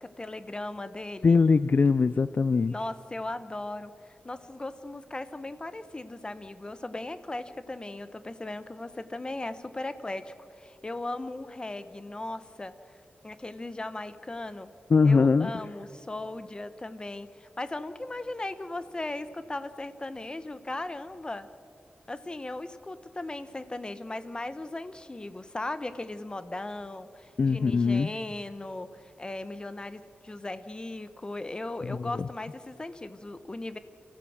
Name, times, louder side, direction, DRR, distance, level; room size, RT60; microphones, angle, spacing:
voice 1, 0.0-1.4 2.7-3.9 4.2-12.7 13.2-14.7 15.0-21.5 22.1-33.8, left 2 dB, 25° left, 12 dB, 0.9 m, -37 dB
voice 2, 1.2-2.7 14.9-15.6 27.4-28.1 31.9-32.3, left 4 dB, 50° left, 14 dB, 0.4 m, -22 dB
28.0 x 15.5 x 6.4 m, 2.5 s
wide cardioid pair, 130°, 4 cm